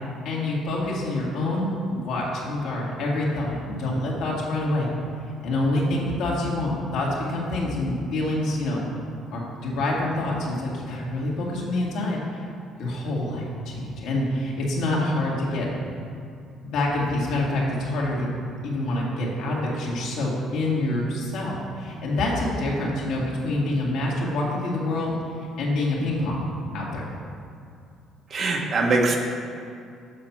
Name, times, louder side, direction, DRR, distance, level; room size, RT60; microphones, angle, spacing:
voice 1, 0.2-4.9 5.4-8.9 9.3-12.4 12.8-15.7 16.6-18.3 18.6-25.2 25.6-26.4 26.7-27.0, left 1 dB, 75° left, -4 dB, 2.0 m, -26 dB
voice 2, 28.3-29.2, right 3 dB, 45° right, 1 dB, 1.2 m, -22 dB
7.4 x 6.0 x 5.9 m, 2.4 s
cardioid pair, 130°, 0 cm